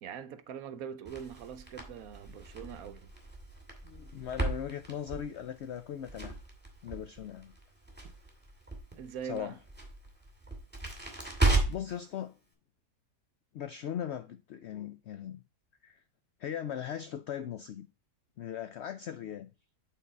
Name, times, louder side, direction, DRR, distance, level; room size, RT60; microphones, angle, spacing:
voice 1, 0.0-3.1 9.0-9.6, right 8 dB, 70° right, 1.0 m, -42 dB
Crackle, 1.0-12.0, right 2 dB, 5° right, 2.1 m, -35 dB
voice 2, 3.8-6.4 6.8-7.5 9.2-9.5 11.7-12.4 13.5-15.4 15.8-16.0 16.4-17.9 18.4-19.5, left 9 dB, 85° left, 0.5 m, -39 dB
8.5 x 3.9 x 4.0 m
omnidirectional pair, 1.7 m